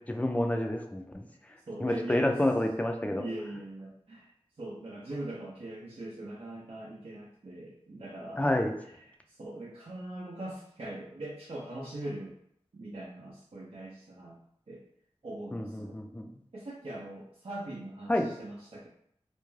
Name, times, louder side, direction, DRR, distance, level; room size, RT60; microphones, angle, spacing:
voice 1, 0.1-1.2 1.8-3.2 8.4-8.7 15.5-16.3 18.1-18.3, left 1 dB, 15° left, 3 dB, 0.4 m, -28 dB
voice 2, 1.7-2.3 3.0-8.5 8.8-12.4 12.7-14.4 14.7-14.8 15.2-16.0 16.5-18.9, right 1 dB, 60° right, -6 dB, 0.6 m, -41 dB
2.5 x 2.2 x 3.1 m, 0.70 s
cardioid pair, 40°, 11 cm